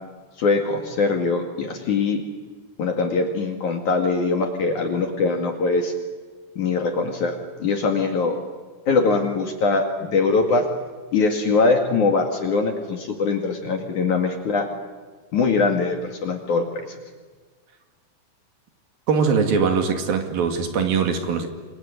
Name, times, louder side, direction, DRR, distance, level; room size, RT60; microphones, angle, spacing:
voice 1, 0.4-2.2 2.8-5.9 6.6-8.4 8.9-10.7 11.1-14.7 15.3-16.9, left 4 dB, 50° left, 3.1 m, -22 dB
voice 2, 19.1-21.5, right 5 dB, 60° right, 3.7 m, -21 dB
28.5 x 22.5 x 8.4 m
omnidirectional pair, 5.2 m